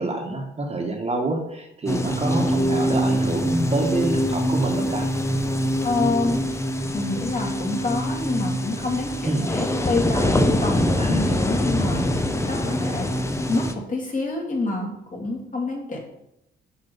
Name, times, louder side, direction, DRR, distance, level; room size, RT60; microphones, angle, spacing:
voice 1, 0.0-5.1 9.2-9.5 11.0-11.5, right 2 dB, 30° right, 2 dB, 1.6 m, -27 dB
sound 1, 1.9-13.7, equal, 15° left, 0.9 m, -24 dB
voice 2, 5.8-6.4 6.9-12.0 12.5-13.1 13.5-16.0, left 3 dB, 40° left, -2 dB, 3.0 m, -27 dB
7.2 x 5.0 x 5.7 m, 0.82 s
cardioid pair, 90°, 20 cm